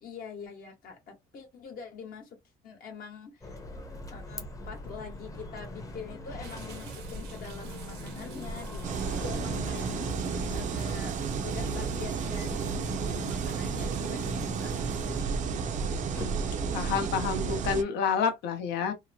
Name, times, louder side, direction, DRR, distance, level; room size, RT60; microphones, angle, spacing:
voice 1, 0.0-2.4 2.6-3.6 4.1-10.2 10.5-11.1 11.4-12.8 13.1-15.6, left 5 dB, 60° left, 1.1 m, -44 dB
sound 1, 3.4-17.6, left 1 dB, 20° left, 0.7 m, -40 dB
sound 2, 6.4-15.2, right 6 dB, 85° right, 0.8 m, -47 dB
sound 3, 8.8-17.8, right 6 dB, 45° right, 0.4 m, -32 dB
voice 2, 16.7-18.9, left 6 dB, 80° left, 0.8 m, -28 dB
2.8 x 2.0 x 2.7 m
cardioid pair, 110°, 17 cm